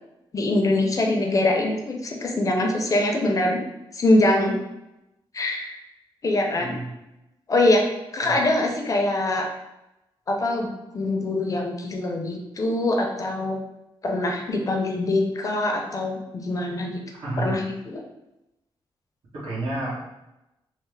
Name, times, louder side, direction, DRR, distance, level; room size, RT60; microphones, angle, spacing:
voice 1, 0.3-3.6 3.9-4.5 5.3-5.8 6.2-6.8 7.5-7.9 8.1-9.4 10.3-10.7 10.9-13.6 14.0-17.0 17.4-18.0, left 2 dB, 35° left, 1 dB, 0.5 m, -23 dB
voice 2, 6.6-6.9 8.2-8.3 17.2-17.6 19.3-20.1, right 2 dB, 75° right, -7 dB, 1.2 m, -30 dB
3.1 x 2.0 x 3.2 m, 0.94 s
wide cardioid pair, 140°, 9 cm